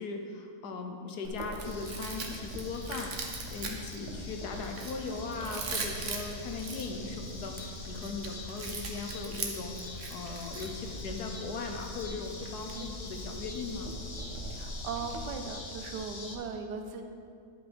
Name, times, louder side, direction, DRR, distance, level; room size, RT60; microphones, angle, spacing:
voice 1, 0.0-13.9, left 4 dB, 75° left, 4 dB, 1.4 m, -39 dB
Chewing mastication, 1.2-15.3, right 3 dB, 55° right, 1.1 m, -41 dB
sound 1, 1.6-16.3, left 3 dB, 45° left, 0.4 m, -44 dB
sound 2, 5.1-10.4, right 1 dB, 10° left, 1.7 m, -52 dB
voice 2, 14.5-17.0, right 5 dB, 80° right, 6 dB, 1.3 m, -38 dB
10.5 x 5.4 x 5.2 m, 2.3 s
omnidirectional pair, 1.8 m